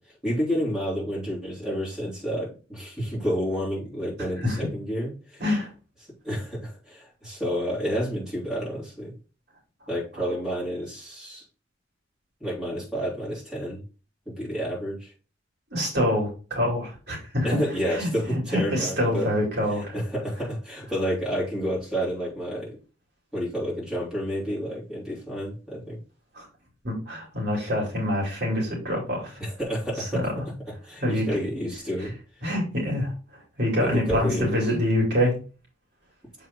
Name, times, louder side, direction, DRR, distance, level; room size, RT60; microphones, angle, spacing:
voice 1, 0.2-5.4 6.2-9.1 9.9-11.4 12.4-13.8 14.2-15.1 17.4-19.3 19.7-22.8 23.3-26.0 29.4-30.2 30.8-32.1 33.8-34.6, equal, 5° right, -6 dB, 3.3 m, -30 dB
voice 2, 15.7-17.5 17.9-19.9 26.3-26.5 26.8-29.4 30.0-30.4 31.0-31.3 32.4-33.1 33.6-35.3, left 1 dB, 60° right, -3 dB, 2.9 m, -26 dB
7.1 x 4.3 x 3.7 m, 0.35 s
head